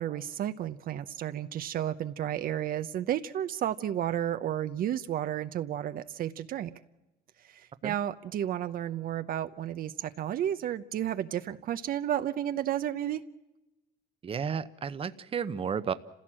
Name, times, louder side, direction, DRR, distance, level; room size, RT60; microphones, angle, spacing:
voice 1, 0.0-6.7 7.4-13.2, right 11 dB, 60° right, 10 dB, 0.8 m, -32 dB
voice 2, 14.2-15.9, right 7 dB, 35° right, 13 dB, 0.9 m, -32 dB
29.5 x 16.0 x 7.5 m, 1.0 s
cardioid pair, 110°, 17 cm